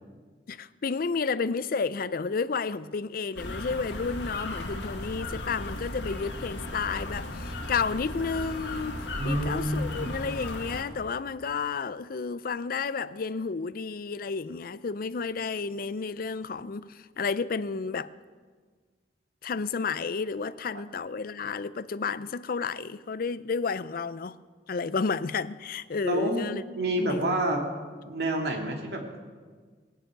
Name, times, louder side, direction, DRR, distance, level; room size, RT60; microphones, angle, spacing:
voice 1, 0.5-18.1 19.4-24.4 24.7-26.6 27.0-27.3, left 5 dB, 55° left, 0.5 m, -31 dB
sound 1, 3.4-10.8, left 1 dB, 90° left, 1.9 m, -36 dB
voice 2, 9.2-10.1 26.0-26.5 26.8-27.6 28.0-29.2, right 1 dB, 65° right, 2.4 m, -28 dB
19.0 x 6.9 x 8.9 m
head